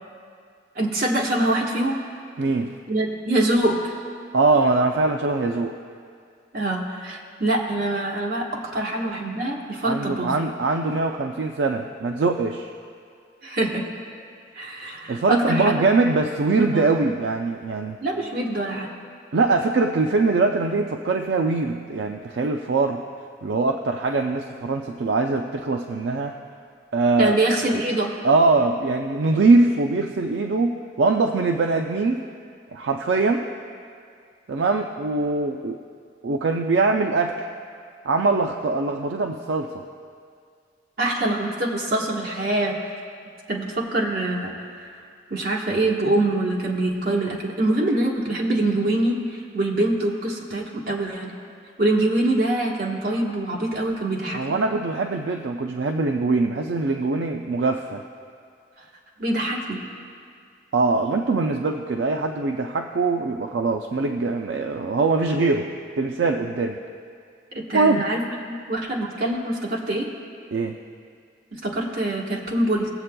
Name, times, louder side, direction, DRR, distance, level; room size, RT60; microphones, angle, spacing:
voice 1, 0.7-1.9 2.9-3.9 6.5-8.5 8.7-10.4 13.4-13.9 14.5-15.8 16.7-16.9 18.0-18.9 27.2-28.1 41.0-42.8 43.5-44.9 45.3-51.3 51.8-54.6 59.2-59.8 67.5-70.1 71.5-72.9, right 1 dB, 55° right, -2 dB, 1.2 m, -24 dB
voice 2, 2.4-2.7 4.3-5.7 9.8-12.7 15.1-18.0 19.3-23.0 23.4-26.4 26.9-27.3 28.2-32.2 32.7-33.4 34.5-35.8 36.2-37.4 38.0-39.8 54.3-58.0 60.7-65.7 66.0-66.8 67.7-68.1 70.5-70.8, right 3 dB, 75° right, 4 dB, 0.4 m, -22 dB
20.0 x 7.6 x 2.2 m, 2.3 s
head